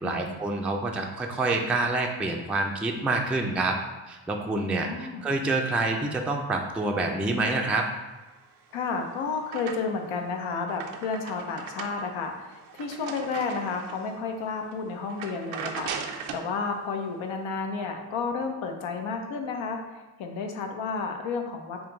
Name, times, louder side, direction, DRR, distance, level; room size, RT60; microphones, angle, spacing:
voice 1, 0.0-3.8 4.1-4.9 5.2-7.9, right 2 dB, 5° right, 2 dB, 0.3 m, -27 dB
voice 2, 4.8-5.3 8.7-21.8, left 4 dB, 75° left, 4 dB, 0.7 m, -32 dB
sound 1, 8.6-10.1 10.5-14.1 14.6-14.7 15.1-16.5, right 6 dB, 80° right, 0.5 m, -39 dB
3.6 x 2.3 x 3.8 m, 1.2 s
supercardioid pair, 50°, 47 cm